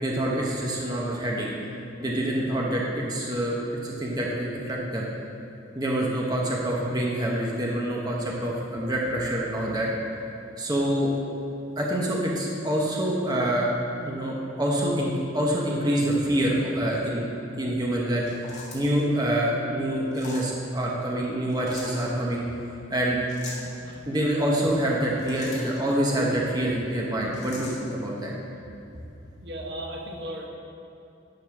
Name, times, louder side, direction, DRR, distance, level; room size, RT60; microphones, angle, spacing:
voice 1, 0.0-1.5 2.0-3.6 3.8-5.1 5.7-9.9 10.6-11.1 11.8-13.7 14.0-17.3 17.6-18.5 18.7-22.4 22.9-23.2 24.1-28.3, right 1 dB, 20° right, -3 dB, 1.0 m, -26 dB
sound 1, 18.2-19.0 20.1-20.5 21.5-22.0 23.3-23.7 24.9-25.8 27.3-27.8, left 2 dB, 35° left, 2.1 m, -41 dB
voice 2, 29.4-30.5, right 1 dB, 60° right, 0 dB, 1.1 m, -36 dB
11.5 x 4.0 x 6.0 m, 2.9 s
head